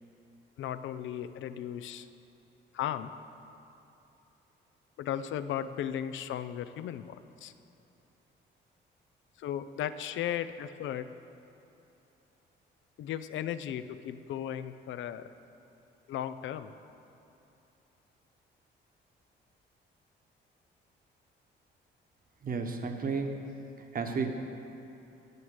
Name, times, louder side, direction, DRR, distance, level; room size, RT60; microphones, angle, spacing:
voice 1, 0.6-2.1 2.7-3.1 5.0-7.5 9.4-11.1 13.0-15.3 16.1-16.7, left 10 dB, 75° left, 12 dB, 0.5 m, -36 dB
voice 2, 22.4-23.4 23.9-24.3, right 4 dB, 45° right, 4 dB, 1.2 m, -32 dB
9.4 x 7.3 x 8.0 m, 2.9 s
cardioid pair, 90°, 20 cm